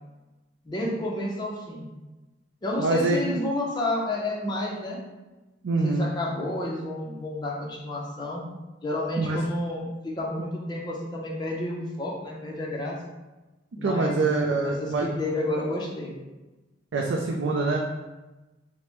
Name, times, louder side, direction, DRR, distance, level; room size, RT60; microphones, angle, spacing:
voice 1, 0.6-1.9 2.6-5.0 5.7-8.5 8.8-13.0 13.7-16.1, left 1 dB, 25° left, -3 dB, 0.6 m, -30 dB
voice 2, 2.8-3.2 5.6-6.1 9.2-9.4 13.8-15.1 16.9-17.8, right 3 dB, 80° right, 0 dB, 0.4 m, -25 dB
4.9 x 2.1 x 3.0 m, 1.1 s
head